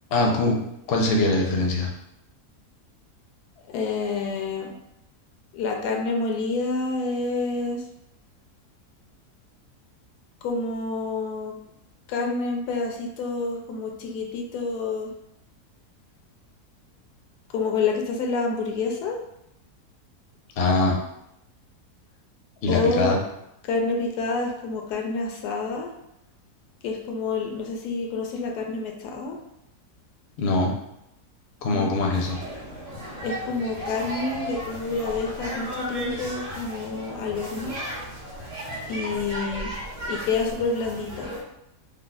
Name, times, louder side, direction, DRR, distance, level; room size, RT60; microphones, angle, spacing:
voice 1, 0.1-0.6 0.9-1.9 20.6-21.0 22.6-23.2 30.4-30.7 31.6-32.4, left 2 dB, 60° left, 0 dB, 0.7 m, -22 dB
voice 2, 3.7-4.7 5.5-7.8 10.4-11.5 12.1-15.1 17.5-19.2 22.7-23.1 23.6-25.9 26.8-29.4 31.7-31.9 33.2-37.8 38.9-39.7 40.1-41.3, left 3 dB, 85° left, 2 dB, 1.1 m, -28 dB
sound 1, 32.1-41.4, equal, 45° right, 1.2 m, -35 dB
5.0 x 2.0 x 2.3 m, 0.82 s
omnidirectional pair, 1.6 m